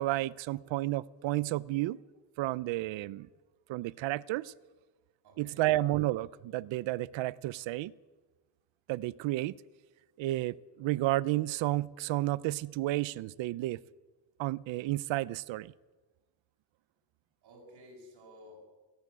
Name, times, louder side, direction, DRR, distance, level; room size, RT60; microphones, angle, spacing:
voice 1, 0.0-2.0 2.4-3.3 3.7-4.5 5.4-7.9 8.9-9.6 10.2-13.8 14.4-15.7, right 17 dB, 75° right, 21 dB, 0.7 m, -31 dB
voice 2, 5.2-5.7 17.4-18.6, left 1 dB, 55° right, -1 dB, 6.9 m, -53 dB
17.0 x 16.0 x 9.8 m, 1.2 s
cardioid pair, 160°, 45 cm